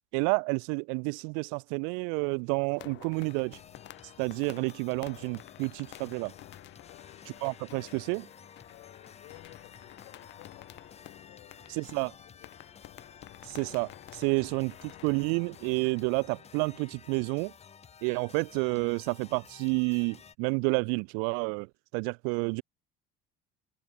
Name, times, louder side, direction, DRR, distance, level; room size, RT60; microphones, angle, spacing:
voice 1, 0.1-3.6 4.2-6.3 7.4-8.3 11.7-12.1 13.4-17.5 18.0-22.6, right 40 dB or more, 90° right, 0.5 m, -30 dB
sound 1, 2.7-16.9, left 16 dB, 60° left, 0.8 m, -51 dB
sound 2, 3.1-20.3, left 7 dB, 30° left, 1.5 m, -53 dB
voice 2, 6.9-7.3 8.7-10.8 11.2-12.0 12.3-12.7 14.3-14.5, left 25 dB, 85° left, 3.9 m, -56 dB
cardioid pair, 100°, 21 cm